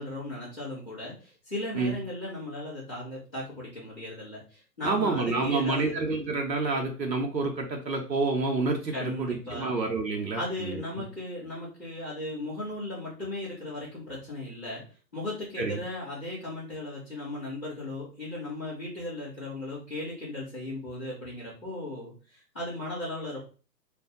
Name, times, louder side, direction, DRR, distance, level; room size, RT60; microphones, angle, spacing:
voice 1, 0.0-5.9 8.9-9.7 10.3-14.8 15.1-23.4, left 1 dB, 5° left, -19 dB, 0.5 m, -36 dB
voice 2, 4.8-10.8 15.6-15.8, right 3 dB, 85° right, 2 dB, 0.9 m, -28 dB
2.6 x 2.4 x 3.7 m, 0.36 s
figure-of-eight pair, 140°, 50 cm